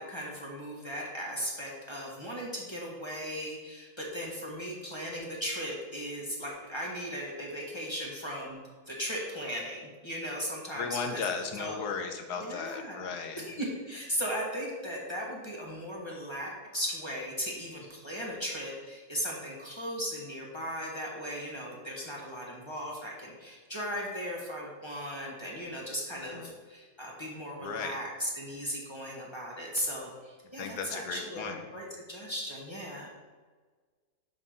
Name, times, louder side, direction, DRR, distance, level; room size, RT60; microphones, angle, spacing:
voice 1, 0.0-8.6 8.9-11.2 11.5-11.9 12.4-31.4 31.7-33.1, equal, 20° left, -3 dB, 1.4 m, -37 dB
voice 2, 10.8-13.4 26.3-26.5 27.6-28.0 30.6-31.6, left 5 dB, 85° left, 5 dB, 1.4 m, -35 dB
5.4 x 4.9 x 6.3 m, 1.4 s
omnidirectional pair, 1.7 m